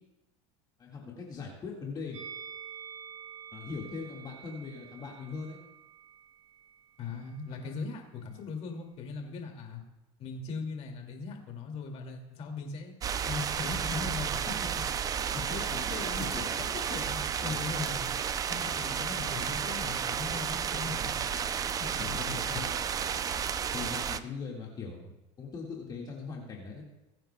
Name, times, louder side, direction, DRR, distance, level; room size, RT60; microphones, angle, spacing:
voice 1, 0.8-2.2 3.5-5.6 7.5-7.7 15.3-16.6 17.4-17.6 19.3-19.5 22.0-22.8 23.7-26.8, left 5 dB, 30° left, -2 dB, 1.8 m, -41 dB
Musical instrument, 2.1-7.4 7.6-7.8, right 7 dB, 85° right, 3.9 m, -48 dB
voice 2, 7.0-9.8 10.2-12.9 13.3-14.8 15.3-16.2 16.6-18.1 18.5-21.1 21.8-22.6, left 4 dB, 45° left, 2 dB, 2.3 m, -39 dB
sound 1, 13.0-24.2, right 7 dB, 25° right, 0.4 m, -32 dB
21.0 x 9.0 x 2.2 m, 1.0 s
supercardioid pair, 135°, 15 cm